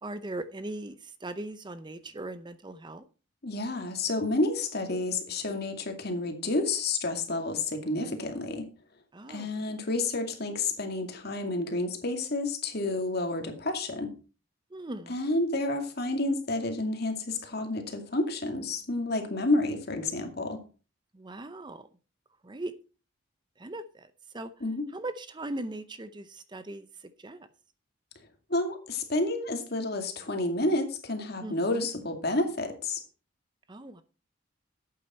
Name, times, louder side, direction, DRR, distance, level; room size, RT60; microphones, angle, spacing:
voice 1, 0.0-3.0 8.0-8.1 9.1-9.8 14.7-15.2 21.1-21.9 22.4-22.7 23.6-24.5 24.9-27.5 31.4-31.9 33.7-34.0, right 2 dB, 25° right, 12 dB, 0.6 m, -39 dB
voice 2, 3.4-8.7 9.3-14.1 15.1-20.6 24.6-24.8 28.5-33.0, left 2 dB, 55° left, 5 dB, 2.3 m, -30 dB
11.5 x 8.7 x 4.3 m, 0.34 s
head